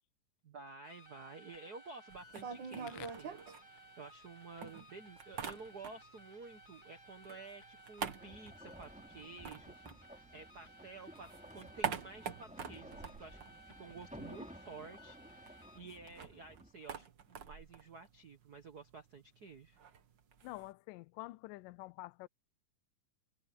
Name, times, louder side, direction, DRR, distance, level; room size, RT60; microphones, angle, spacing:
voice 1, 0.4-3.4 3.7-19.8, right 4 dB, 75° right, 0.9 m, -52 dB
sound 1, 0.8-15.8, right 1 dB, 15° left, 2.2 m, -59 dB
sound 2, 2.1-4.3 4.6-6.2 6.5-10.7 11.0-14.3 14.5-14.6 14.9-20.7, right 7 dB, 50° right, 1.4 m, -45 dB
sound 3, 8.2-16.7, equal, ahead, 2.9 m, -55 dB
voice 2, 20.4-22.3, left 20 dB, 80° left, 2.2 m, -47 dB
omnidirectional pair, 3.9 m